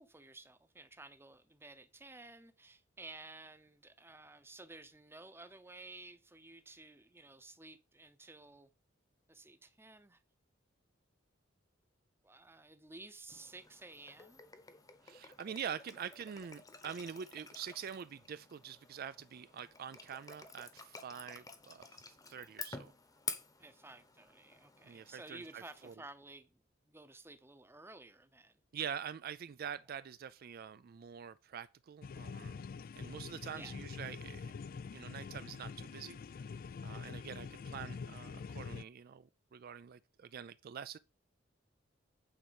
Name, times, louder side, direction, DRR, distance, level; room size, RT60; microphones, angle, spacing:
voice 1, 0.0-8.7 9.3-10.2 12.2-14.4 23.6-28.6 33.5-33.7 37.0-37.2, right 2 dB, 10° right, 0.8 m, -54 dB
sound 1, 13.3-25.9, left 4 dB, 20° left, 1.0 m, -50 dB
voice 2, 15.0-22.9 24.8-25.9 28.7-32.6 33.0-34.6 34.9-36.5 36.8-41.0, right 8 dB, 50° right, 0.4 m, -45 dB
sound 2, 32.0-38.8, left 5 dB, 50° left, 0.3 m, -45 dB
8.7 x 4.4 x 6.9 m
head